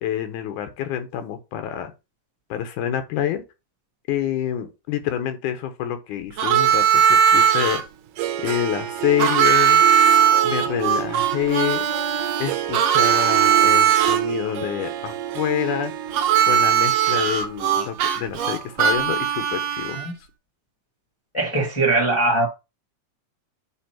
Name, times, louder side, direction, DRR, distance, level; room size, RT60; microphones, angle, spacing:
voice 1, 0.0-1.9 2.5-3.4 4.1-7.8 8.4-9.8 10.4-11.8 12.4-15.9 16.4-20.0, left 10 dB, 75° left, 2.4 m, -27 dB
Harmonica, 6.4-7.8 9.2-14.2 16.1-20.1, right 9 dB, 65° right, 1.8 m, -19 dB
Harp, 7.5-19.6, right 11 dB, 90° right, 2.4 m, -31 dB
voice 2, 21.3-22.5, right 2 dB, 45° left, 0.4 m, -21 dB
8.3 x 3.0 x 4.3 m
omnidirectional pair, 3.7 m